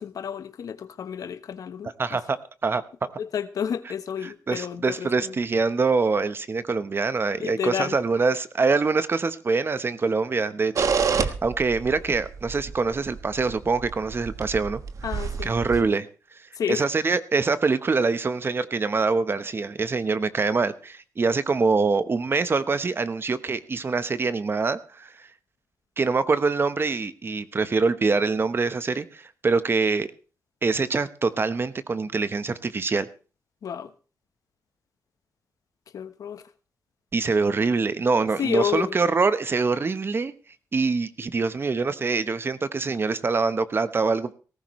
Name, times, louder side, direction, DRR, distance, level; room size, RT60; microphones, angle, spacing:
voice 1, 0.0-2.2 3.2-5.4 7.4-8.0 15.0-15.5 15.8-15.9 16.6-16.9 33.6-33.9 35.9-36.4 38.4-39.0, left 8 dB, 70° left, 12 dB, 1.1 m, -30 dB
voice 2, 2.0-2.8 4.2-14.8 15.4-16.1 16.7-25.3 26.0-30.1 30.6-33.1 37.1-40.3 40.7-44.3, right 4 dB, 40° right, 13 dB, 1.1 m, -24 dB
sound 1, 10.8-15.8, right 6 dB, 60° right, 1.3 m, -29 dB
18.0 x 15.0 x 3.2 m, 0.36 s
cardioid pair, 80°, 6 cm